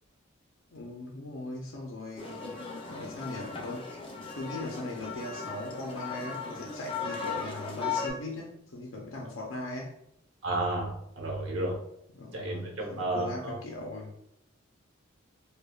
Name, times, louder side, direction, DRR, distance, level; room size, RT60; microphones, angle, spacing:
voice 1, 0.7-2.6 2.9-3.9 4.3-10.0 12.1-14.1, left 2 dB, 80° left, -1 dB, 0.6 m, -39 dB
sound 1, 2.2-8.1, left 5 dB, 25° left, 0.6 m, -37 dB
voice 2, 10.4-11.8 12.3-13.6, right 2 dB, 65° right, -1 dB, 1.1 m, -32 dB
4.9 x 2.3 x 2.4 m, 0.75 s
head